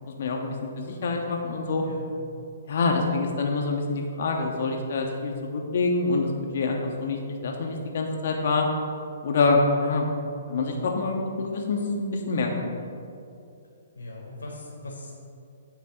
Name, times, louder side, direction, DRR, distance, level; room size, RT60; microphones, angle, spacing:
voice 1, 0.0-1.8 2.7-8.7 9.2-10.1 10.5-12.7, left 3 dB, 55° left, 1 dB, 0.9 m, -26 dB
voice 2, 13.9-15.1, left 1 dB, 85° left, -1 dB, 1.4 m, -39 dB
8.8 x 3.3 x 6.4 m, 2.5 s
figure-of-eight pair, 125°, 0 cm